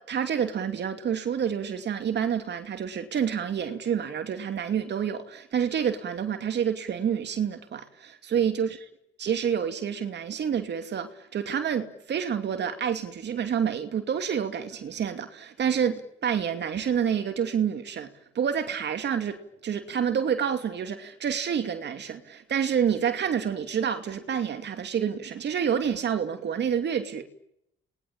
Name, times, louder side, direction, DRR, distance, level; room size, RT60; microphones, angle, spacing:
voice 1, 0.1-8.7 9.2-27.3, right 8 dB, 60° right, 2.7 m, -28 dB
29.5 x 21.0 x 8.8 m
cardioid pair, 90°, 20 cm